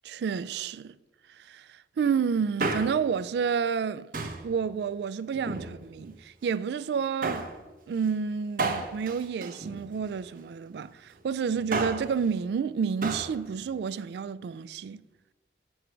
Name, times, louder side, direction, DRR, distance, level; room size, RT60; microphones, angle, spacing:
voice 1, 0.0-1.0 1.4-4.1 4.4-7.5 7.9-15.0, right 6 dB, 70° right, 0.3 m, -30 dB
Male speech man speaking, 2.4-3.2 4.1-4.5 5.3-6.1 7.2-7.6 8.6-10.2 11.5-12.1 13.0-13.3 13.6-13.7, right 3 dB, 50° right, 0.8 m, -32 dB
7.9 x 6.2 x 4.5 m
head